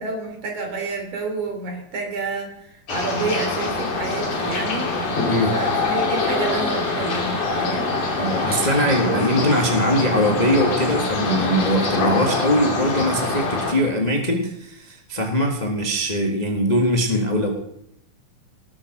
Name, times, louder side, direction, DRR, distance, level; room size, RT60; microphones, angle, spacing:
voice 1, 0.0-7.9 8.8-9.3, right 3 dB, 75° right, 2 dB, 4.6 m, -29 dB
sound 1, 2.9-13.7, left 3 dB, 60° left, 3.6 m, -24 dB
voice 2, 8.1-17.5, equal, 30° left, 2 dB, 0.8 m, -21 dB
18.5 x 7.2 x 6.5 m, 0.77 s
omnidirectional pair, 3.5 m